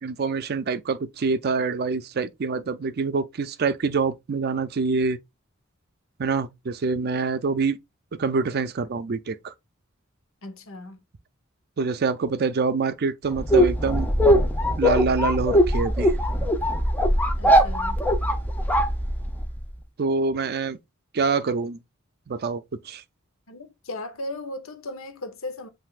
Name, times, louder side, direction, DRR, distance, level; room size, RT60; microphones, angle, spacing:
voice 1, 0.0-5.2 6.2-7.8 8.2-9.5 11.8-14.1 14.8-16.2 20.0-20.8 21.1-21.8 22.3-23.0, right 4 dB, 50° right, 0.5 m, -25 dB
voice 2, 10.4-11.0 17.4-18.0 23.5-25.7, left 2 dB, 75° left, 0.9 m, -36 dB
sound 1, 13.3-19.6, equal, 10° left, 0.6 m, -21 dB
7.9 x 2.7 x 2.4 m
head